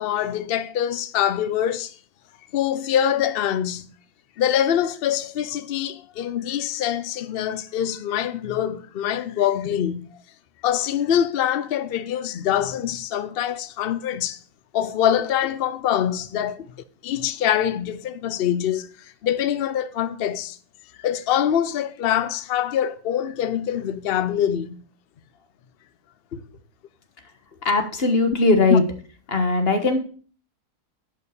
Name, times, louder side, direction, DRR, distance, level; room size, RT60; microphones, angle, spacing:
voice 1, 0.0-2.0 2.5-3.9 4.4-10.2 10.6-14.4 14.7-16.6 17.0-20.6 21.0-24.8 28.7-28.8, left 10 dB, 75° left, 0.5 m, -24 dB
voice 2, 27.6-28.8 29.3-30.0, left 3 dB, 40° left, 1.7 m, -19 dB
11.0 x 5.6 x 6.6 m
omnidirectional pair, 1.7 m